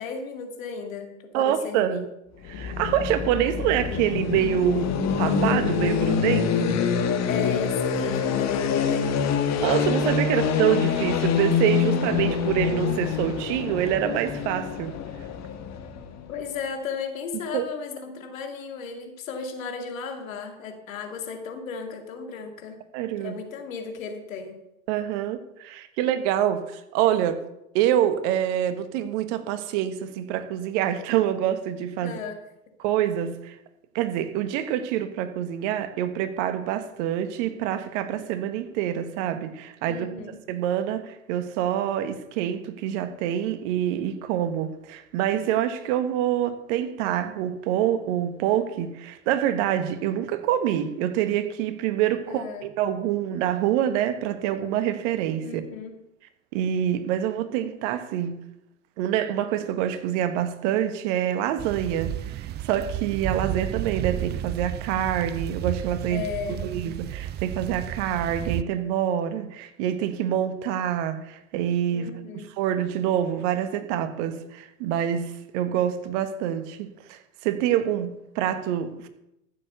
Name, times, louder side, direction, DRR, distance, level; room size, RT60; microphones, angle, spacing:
voice 1, 0.0-2.1 7.3-9.4 16.3-22.8 23.2-24.6 32.0-32.4 39.9-40.4 52.2-52.6 55.4-55.9 66.1-66.8 71.9-72.4, left 5 dB, 80° left, 2.5 m, -35 dB
voice 2, 1.3-2.1 2.5-4.9 5.2-6.8 9.6-15.0 17.5-17.7 22.9-23.4 24.9-27.4 27.7-32.2 32.8-33.5 33.9-40.1 40.5-55.6 56.5-58.4 59.0-66.2 66.6-72.1 72.6-79.1, right 10 dB, 65° right, 1.5 m, -26 dB
sound 1, 2.4-16.3, left 6 dB, 40° left, 1.8 m, -25 dB
sound 2, 61.6-68.6, right 12 dB, 25° right, 0.4 m, -32 dB
14.0 x 7.1 x 6.8 m
hypercardioid pair, 80°, 40 cm